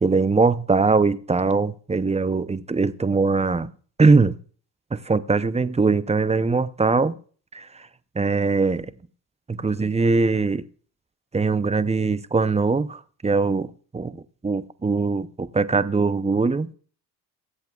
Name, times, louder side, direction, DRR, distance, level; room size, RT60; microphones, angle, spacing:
voice 1, 0.0-3.7 4.0-4.4 4.9-7.1 7.5-7.7 8.2-8.9 9.5-10.6 11.3-14.1 14.4-16.7, right 4 dB, 15° right, 0.7 m, -21 dB
23.5 x 7.9 x 2.4 m
hypercardioid pair, 60°, 49 cm